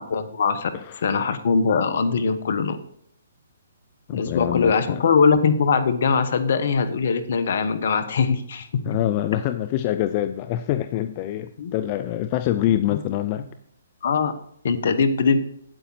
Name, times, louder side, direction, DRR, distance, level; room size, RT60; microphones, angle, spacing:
voice 1, 0.1-0.7 1.0-2.8 4.1-8.7 11.6-11.7 12.9-13.0 14.0-14.4 14.6-15.4, left 5 dB, 60° left, 11 dB, 1.2 m, -21 dB
voice 2, 4.1-5.0 8.8-13.5, left 13 dB, 35° left, 11 dB, 0.5 m, -25 dB
9.0 x 8.5 x 4.1 m, 0.68 s
figure-of-eight pair, 135°, 0 cm